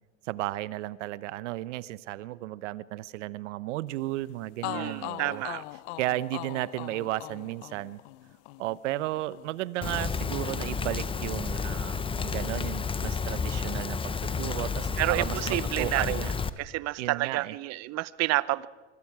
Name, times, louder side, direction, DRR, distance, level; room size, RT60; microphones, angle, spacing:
voice 1, 0.2-5.4 6.0-8.0 8.6-16.3 17.0-17.5, right 16 dB, 75° right, 19 dB, 0.9 m, -34 dB
sound 1, 4.2-4.3 4.6-12.5 12.7-13.9, left 19 dB, 60° left, 0.7 m, -42 dB
voice 2, 4.6-5.6 15.0-16.2 16.6-18.7, right 18 dB, 45° right, 20 dB, 0.8 m, -29 dB
Rain, 9.8-16.5, left 5 dB, 15° left, 0.8 m, -31 dB
24.5 x 24.5 x 4.8 m, 1.4 s
hypercardioid pair, 100°, 37 cm